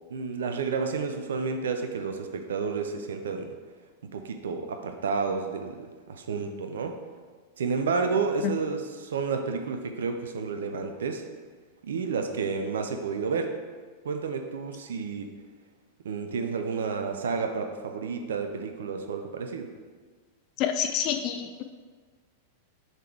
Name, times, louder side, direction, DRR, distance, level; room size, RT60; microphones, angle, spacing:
voice 1, 0.1-3.6 4.0-7.0 7.6-11.3 11.8-13.6 14.0-15.3 16.0-19.7, right 5 dB, 65° right, 6 dB, 0.5 m, -30 dB
voice 2, 20.6-21.6, left 9 dB, 40° left, 6 dB, 0.4 m, -28 dB
6.4 x 4.1 x 4.6 m, 1.5 s
figure-of-eight pair, 90°, 0 cm